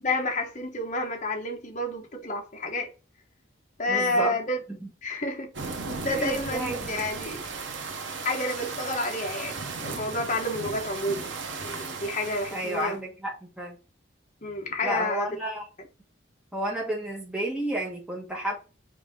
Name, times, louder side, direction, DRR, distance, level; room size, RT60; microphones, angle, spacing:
voice 1, 0.0-2.9 3.8-4.6 5.0-5.5 5.9-7.4 8.2-11.3 11.6-13.0 14.4-15.3, left 1 dB, 40° left, 1.0 m, -29 dB
voice 2, 3.9-4.4 4.8-4.9 6.0-7.0 12.5-13.8 14.8-15.6 16.5-18.6, right 1 dB, 5° right, 1.2 m, -31 dB
sound 1, 5.5-12.9, right 4 dB, 75° right, 0.9 m, -36 dB
5.1 x 2.7 x 3.5 m
head